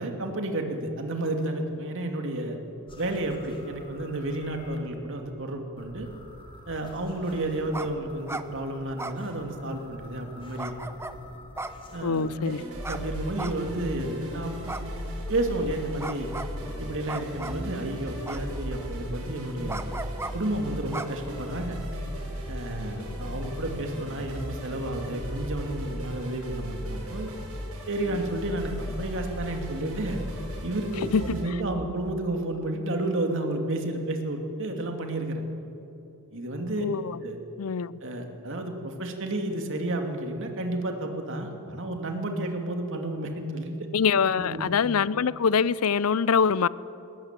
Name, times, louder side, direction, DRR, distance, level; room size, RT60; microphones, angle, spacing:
voice 1, 0.0-2.6 3.0-6.1 6.7-10.7 11.9-12.5 12.9-14.8 15.3-16.3 16.8-19.8 20.3-21.8 22.5-27.3 27.9-30.2 30.6-35.4 36.3-36.9 37.2-37.4 38.0-43.8 44.4-44.7, right 1 dB, 60° right, 2.6 m, -31 dB
sound 1, 2.9-4.8 5.8-12.4, left 1 dB, 25° left, 3.9 m, -48 dB
sound 2, 7.7-7.9 8.2-8.5 9.0-9.8 10.6-11.2 11.6-12.3 12.8-13.0 13.4-14.0 14.7-15.4 16.0-16.5 17.1-17.7 18.3-18.8 19.7-20.3 20.9-21.7, right 2 dB, 10° right, 0.8 m, -36 dB
voice 2, 12.0-12.6 23.3-23.4 31.1-31.2 36.8-37.2 37.6-38.0 43.9-46.7, left 6 dB, 75° left, 0.5 m, -24 dB
sound 3, 12.4-31.4, equal, 75° right, 6.3 m, -36 dB
20.5 x 18.5 x 9.1 m
head